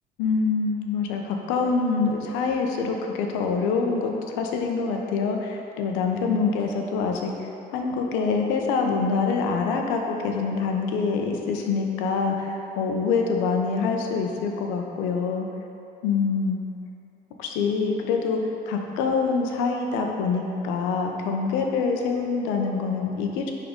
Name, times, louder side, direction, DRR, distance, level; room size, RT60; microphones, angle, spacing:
voice 1, 0.2-15.5 16.0-16.6 17.4-18.4 18.7-23.5, left 4 dB, 90° left, 2 dB, 0.8 m, -25 dB
10.5 x 3.8 x 3.7 m, 2.8 s
cardioid pair, 100°, 19 cm